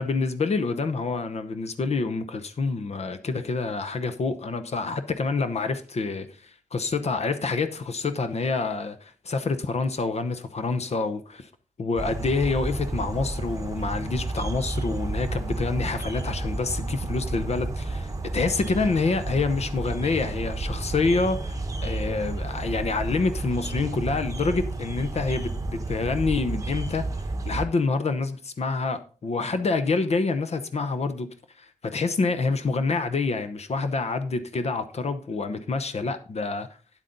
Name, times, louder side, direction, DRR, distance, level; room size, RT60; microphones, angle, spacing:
voice 1, 0.0-11.5 11.8-27.1 27.4-31.3 31.6-36.7, left 3 dB, 55° left, 0.8 m, -27 dB
sound 1, 12.0-27.6, right 2 dB, 25° right, 1.0 m, -31 dB
9.1 x 8.2 x 3.9 m
wide cardioid pair, 140°, 13 cm